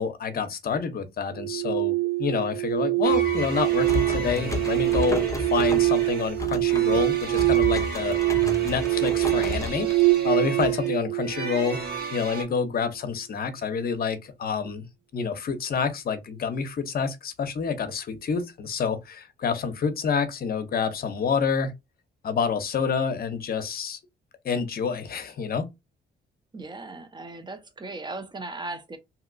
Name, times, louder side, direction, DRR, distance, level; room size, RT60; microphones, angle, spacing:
voice 1, 0.0-8.2 8.6-9.9 10.2-11.8 12.1-14.8 15.1-21.7 22.2-24.0 24.4-25.7, left 6 dB, 50° left, 0.7 m, -28 dB
sound 1, 1.3-12.4, right 21 dB, 70° right, 0.5 m, -25 dB
sound 2, 3.0-12.4, right 2 dB, 50° right, 1.5 m, -35 dB
sound 3, 3.5-10.4, left 3 dB, 15° left, 0.7 m, -34 dB
voice 2, 26.5-29.0, right 2 dB, 20° right, 0.7 m, -37 dB
2.8 x 2.8 x 2.6 m
cardioid pair, 90°, 20 cm